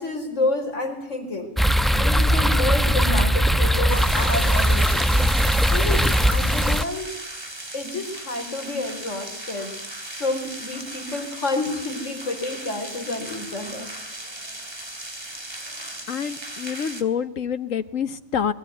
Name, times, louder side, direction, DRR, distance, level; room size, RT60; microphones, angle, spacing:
voice 1, 0.0-1.5 1.9-5.2 5.6-7.1 7.7-13.9, left 2 dB, 70° left, 4 dB, 4.9 m, -29 dB
sound 1, 1.6-6.8, equal, ahead, 0.9 m, -19 dB
sound 2, 3.9-17.0, right 1 dB, 20° right, 2.4 m, -37 dB
voice 2, 16.1-18.5, left 7 dB, 90° left, 11 dB, 1.7 m, -27 dB
27.5 x 21.5 x 9.3 m, 0.67 s
omnidirectional pair, 1.3 m